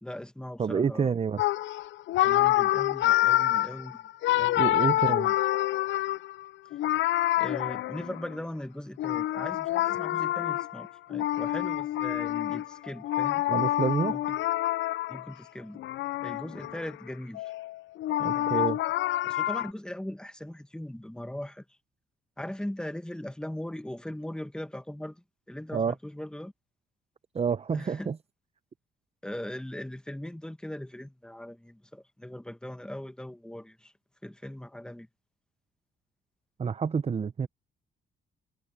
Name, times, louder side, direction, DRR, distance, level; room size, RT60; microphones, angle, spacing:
voice 1, 0.0-1.2 2.2-4.1 4.4-5.3 7.4-13.4 14.1-14.4 15.1-15.8 16.2-17.5 18.2-18.7 19.2-21.6 22.4-26.5 27.7-28.1 29.2-33.9 34.2-35.1, left 1 dB, 5° left, 1.3 m, -39 dB
voice 2, 0.6-1.4 4.6-5.3 13.5-14.2 18.2-18.8 25.7-25.9 27.3-28.2 36.6-37.5, right 6 dB, 30° right, 0.7 m, -28 dB
sound 1, 1.4-8.4 9.0-15.3 15.8-16.9 17.3-19.7, left 14 dB, 70° left, 0.5 m, -27 dB
cardioid pair, 90°, 20 cm